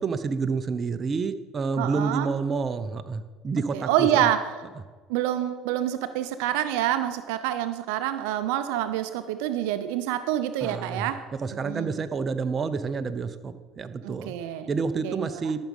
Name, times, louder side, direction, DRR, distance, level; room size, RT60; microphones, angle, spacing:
voice 1, 0.0-4.3 10.6-11.1 11.4-14.3 14.7-15.6, right 4 dB, 35° right, 10 dB, 0.8 m, -29 dB
voice 2, 1.8-2.3 3.7-4.4 5.1-11.2 11.6-12.0 14.0-14.7 15.0-15.5, right 11 dB, 80° right, 11 dB, 0.6 m, -27 dB
13.5 x 6.2 x 5.4 m, 1.4 s
supercardioid pair, 85°, 0 cm